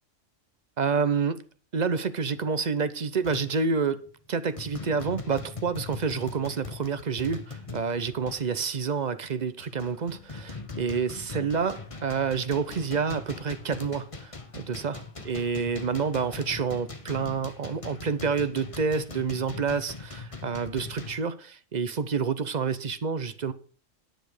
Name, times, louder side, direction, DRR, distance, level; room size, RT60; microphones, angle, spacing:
voice 1, 0.8-1.4 1.7-4.0 4.3-23.5, right 5 dB, 40° right, 0.8 m, -28 dB
sound 1, 2.3-2.5 3.2-3.7 4.1-4.3 4.6-8.7 9.3-21.2, left 3 dB, 30° left, 1.2 m, -41 dB
10.0 x 8.6 x 4.9 m
omnidirectional pair, 1.3 m